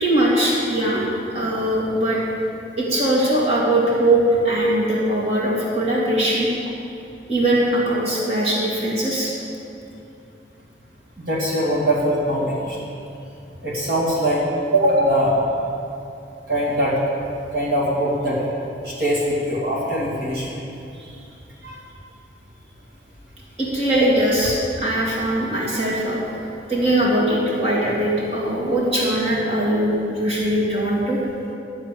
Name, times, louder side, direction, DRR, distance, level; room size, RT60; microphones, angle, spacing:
voice 1, 0.0-2.2 2.8-6.5 7.3-9.3 23.6-26.4 26.7-31.2, right 1 dB, 35° right, -6 dB, 2.7 m, -21 dB
voice 2, 11.2-12.8 13.6-14.5 14.7-15.4 16.5-17.0 17.5-18.4 18.8-20.6 21.0-21.2 21.6-21.8 24.0-24.1, equal, 55° right, -6 dB, 2.5 m, -22 dB
12.0 x 7.2 x 8.5 m, 2.7 s
head